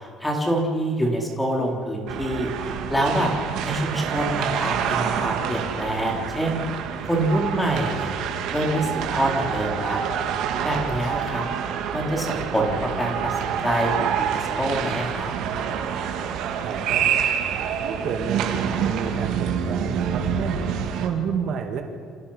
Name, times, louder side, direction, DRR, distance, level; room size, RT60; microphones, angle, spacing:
voice 1, 0.0-3.3 3.6-6.6 7.0-8.2 8.5-10.0 10.6-11.4 11.9-15.3, right 1 dB, 5° left, 0 dB, 3.8 m, -26 dB
sound 1, 2.1-21.1, right 8 dB, 65° right, 3.0 m, -27 dB
voice 2, 16.6-17.1 17.8-20.6 21.0-21.8, right 6 dB, 45° right, 4 dB, 2.3 m, -30 dB
29.0 x 27.0 x 5.8 m, 2.2 s
cardioid pair, 160°, 0 cm